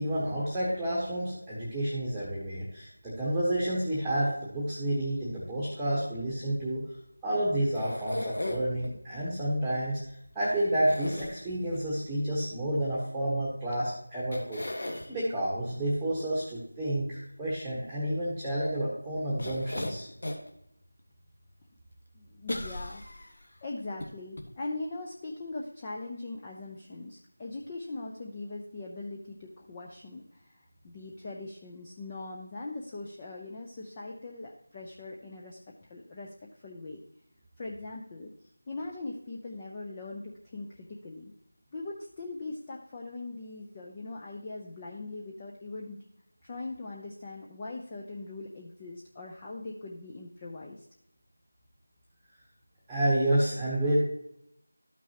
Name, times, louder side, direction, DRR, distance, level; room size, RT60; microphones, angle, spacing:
voice 1, 0.0-6.8 7.2-10.0 10.3-20.1 52.9-54.0, right 1 dB, ahead, -8 dB, 1.2 m, -30 dB
sound 1, 7.7-8.9 10.8-11.8 13.7-13.8 14.3-15.1 19.4-20.5 21.0-21.1 22.5-23.5 24.0-24.1 24.4-24.5, left 1 dB, 60° left, 1.5 m, -36 dB
voice 2, 22.1-37.0 37.6-41.3 41.7-46.0 46.4-50.8, left 2 dB, 20° left, -2 dB, 0.6 m, -41 dB
12.5 x 6.0 x 2.9 m, 0.76 s
figure-of-eight pair, 175°, 0 cm